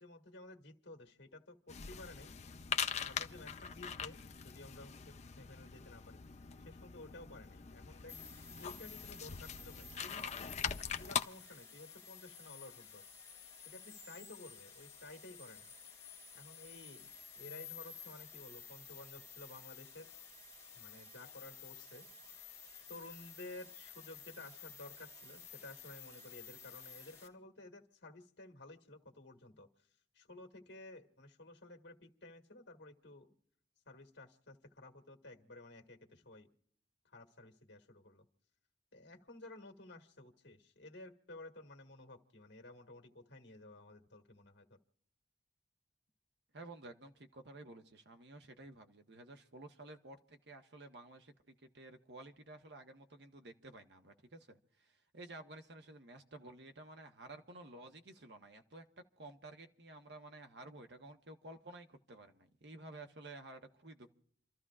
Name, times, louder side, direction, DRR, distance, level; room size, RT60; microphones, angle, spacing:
voice 1, 0.0-2.4 3.0-6.2 6.6-8.1 8.6-10.3 11.0-13.1 13.6-15.7 16.3-17.1 17.3-20.1 20.7-22.4 22.9-29.9 30.1-33.3 33.8-36.5 37.0-38.3 38.9-44.8, left 2 dB, 80° left, 1.8 m, -54 dB
sound 1, 1.7-11.2, left 7 dB, 40° left, 0.5 m, -42 dB
sound 2, 8.1-27.3, left 7 dB, 15° left, 2.5 m, -53 dB
voice 2, 46.5-58.8 59.2-64.1, right 2 dB, 65° right, 1.2 m, -53 dB
29.0 x 13.5 x 2.4 m
head